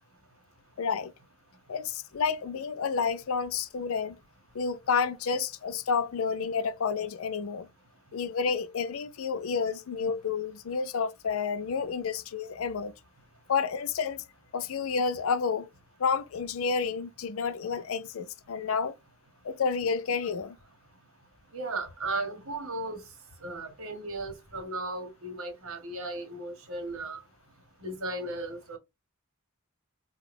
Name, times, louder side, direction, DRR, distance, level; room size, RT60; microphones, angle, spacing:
voice 1, 0.8-1.1 1.7-4.2 4.5-7.7 8.1-12.9 13.5-14.2 14.5-15.7 16.0-19.0 19.4-20.6, left 5 dB, 65° left, 0.4 m, -30 dB
voice 2, 21.5-23.0 23.4-27.2 27.8-28.8, right 2 dB, 70° right, 1.5 m, -35 dB
4.6 x 2.3 x 3.4 m
head